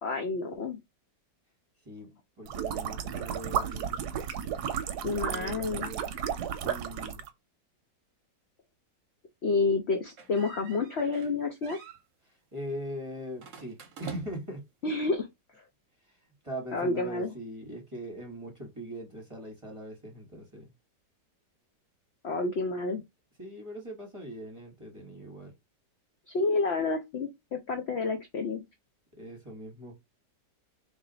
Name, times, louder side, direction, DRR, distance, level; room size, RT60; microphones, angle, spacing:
voice 1, 0.0-0.8 5.0-5.9 9.4-11.8 14.8-15.3 16.7-17.3 22.2-23.0 26.3-28.6, left 3 dB, 70° left, 0.6 m, -29 dB
voice 2, 1.8-3.9 5.3-7.2 12.3-14.7 16.0-16.2 16.4-20.7 23.4-25.5 29.1-30.0, equal, 20° right, 1.0 m, -41 dB
sound 1, 2.5-7.3, right 8 dB, 70° right, 1.1 m, -33 dB
sound 2, 10.2-11.3 11.6-12.0 13.4-14.6, right 5 dB, 55° right, 1.0 m, -46 dB
3.4 x 2.7 x 3.9 m
omnidirectional pair, 1.9 m